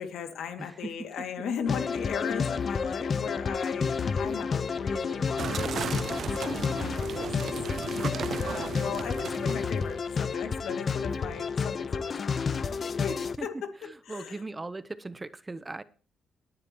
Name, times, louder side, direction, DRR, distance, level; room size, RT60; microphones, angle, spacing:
voice 1, 0.0-7.5 7.8-13.7 14.0-14.4, left 7 dB, 75° left, 6 dB, 2.4 m, -37 dB
voice 2, 0.6-0.9 13.4-13.5 13.8-15.8, right 2 dB, 20° right, 15 dB, 0.9 m, -39 dB
sound 1, 1.7-13.4, left 5 dB, 45° left, 0.8 m, -30 dB
sound 2, 5.4-9.9, right 7 dB, 55° right, 0.5 m, -35 dB
sound 3, 7.6-11.4, right 1 dB, 85° right, 2.5 m, -51 dB
19.5 x 11.0 x 3.1 m, 0.38 s
cardioid pair, 90°, 0 cm